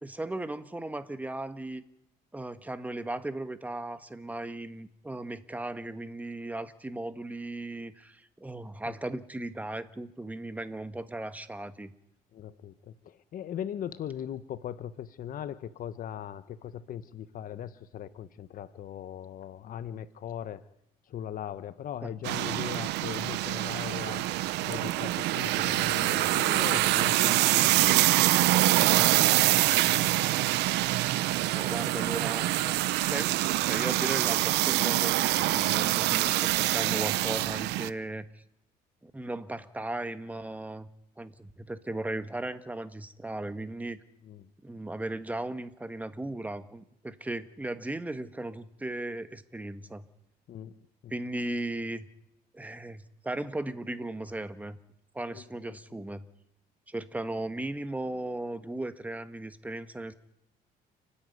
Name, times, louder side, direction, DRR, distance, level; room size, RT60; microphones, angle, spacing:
voice 1, 0.0-1.8 2.3-11.9 22.0-22.1 31.5-32.5 33.0-38.4 39.0-40.9 41.2-44.0 44.6-50.0 51.1-52.1 52.5-54.8 55.1-56.3 56.9-60.1, right 2 dB, 10° right, 11 dB, 1.4 m, -36 dB
voice 2, 12.3-20.6 21.0-24.3 24.7-30.1 44.2-44.5 50.5-51.2 55.3-55.8, left 9 dB, 55° left, 13 dB, 1.1 m, -40 dB
sound 1, 22.2-37.9, right 16 dB, 85° right, 0.8 m, -25 dB
30.0 x 10.0 x 9.4 m, 0.80 s
cardioid pair, 110°, 17 cm